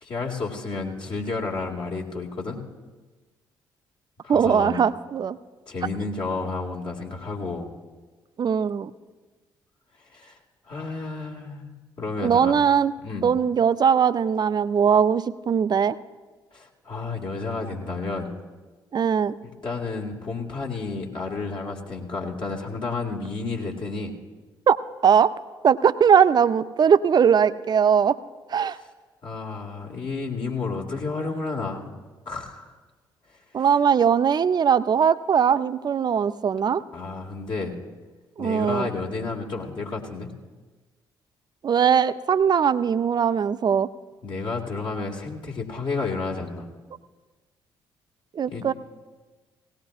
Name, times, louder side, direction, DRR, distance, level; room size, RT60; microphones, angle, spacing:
voice 1, 0.0-2.6 4.2-4.8 5.7-7.7 10.1-10.4 10.7-12.5 13.0-13.3 16.5-18.3 19.4-24.1 28.7-28.8 29.2-31.9 32.3-32.7 36.9-37.7 38.4-40.3 44.2-46.7 48.5-48.7, left 3 dB, 45° left, -1 dB, 1.9 m, -31 dB
voice 2, 4.3-5.4 8.4-8.9 12.2-12.9 13.2-16.0 18.9-19.3 24.7-24.8 25.0-25.3 25.6-28.2 28.5-28.8 33.5-36.8 38.4-38.9 41.6-43.9 48.3-48.7, right 7 dB, 40° right, 14 dB, 0.5 m, -20 dB
17.5 x 17.5 x 2.4 m, 1.3 s
figure-of-eight pair, 45°, 11 cm